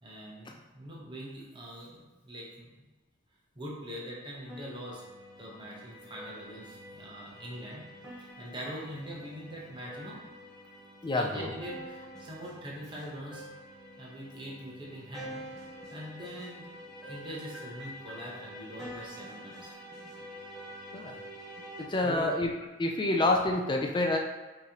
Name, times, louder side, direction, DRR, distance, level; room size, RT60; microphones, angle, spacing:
voice 1, 0.0-2.7 3.6-5.0 5.4-7.8 8.4-10.2 11.2-13.5 14.0-15.4 15.9-16.7 17.1-19.7 22.0-22.3, equal, 25° right, -4 dB, 0.9 m, -43 dB
sound 1, 4.5-21.8, equal, ahead, 1.1 m, -47 dB
voice 2, 11.0-11.5 20.9-21.2 21.8-22.5 22.8-24.2, left 2 dB, 20° left, 2 dB, 0.4 m, -28 dB
5.9 x 3.1 x 2.9 m, 1.2 s
head